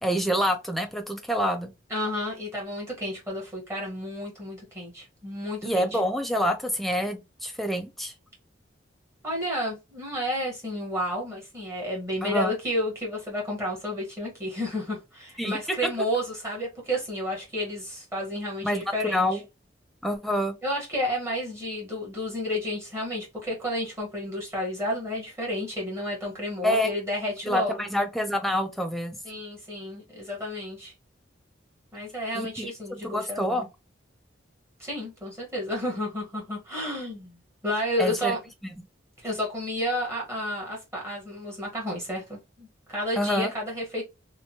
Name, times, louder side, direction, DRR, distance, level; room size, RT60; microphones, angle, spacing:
voice 1, 0.0-1.7 5.6-8.1 12.2-12.5 15.4-15.6 18.6-19.4 20.0-20.5 26.6-26.9 27.4-29.2 32.3-33.7 38.0-38.4 43.2-43.5, equal, ahead, 0.4 m, -27 dB
voice 2, 1.9-6.0 9.2-19.4 20.6-27.7 29.2-30.9 31.9-33.6 34.8-38.4 39.2-44.0, equal, 15° right, 1.1 m, -31 dB
2.9 x 2.2 x 2.7 m
head